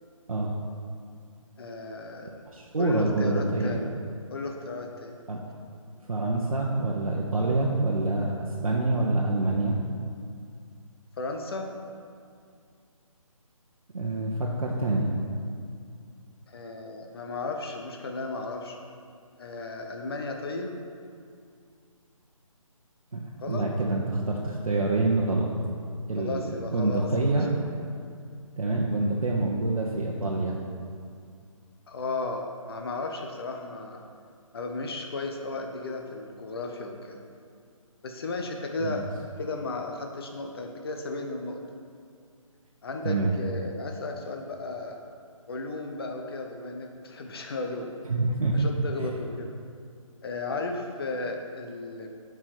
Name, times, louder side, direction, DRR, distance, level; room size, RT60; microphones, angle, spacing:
voice 1, 1.6-2.3 2.8-3.9 4.3-5.2 11.2-11.7 16.5-18.8 19.4-20.7 23.4-23.7 26.2-27.4 31.9-34.0 34.5-37.2 38.0-39.1 39.4-41.6 42.8-45.0 45.5-47.9 48.5-49.6 50.2-52.1, left 3 dB, 45° left, 3 dB, 0.9 m, -34 dB
voice 2, 2.2-3.8 5.3-5.4 6.1-8.3 8.6-9.8 13.9-15.1 23.1-25.5 26.1-26.5 26.7-27.5 28.6-30.6 38.8-39.1 43.0-43.3 48.1-48.7 49.0-49.1, right 2 dB, 75° right, -2 dB, 1.0 m, -26 dB
7.0 x 4.7 x 6.0 m, 2.3 s
figure-of-eight pair, 155°, 18 cm